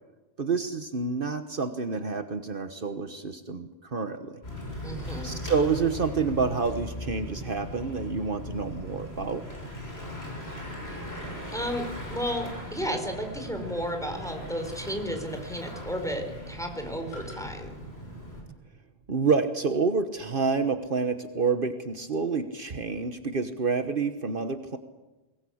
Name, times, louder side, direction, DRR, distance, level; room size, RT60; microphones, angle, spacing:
voice 1, 0.4-4.4 5.2-9.5 19.1-24.8, right 4 dB, 60° right, 9 dB, 1.4 m, -28 dB
Bicycle / Mechanisms, 4.4-18.4, left 1 dB, 85° left, 7.1 m, -39 dB
voice 2, 4.8-5.3 11.5-17.8, equal, 5° left, 4 dB, 4.4 m, -33 dB
23.5 x 20.0 x 8.7 m, 1.1 s
omnidirectional pair, 1.0 m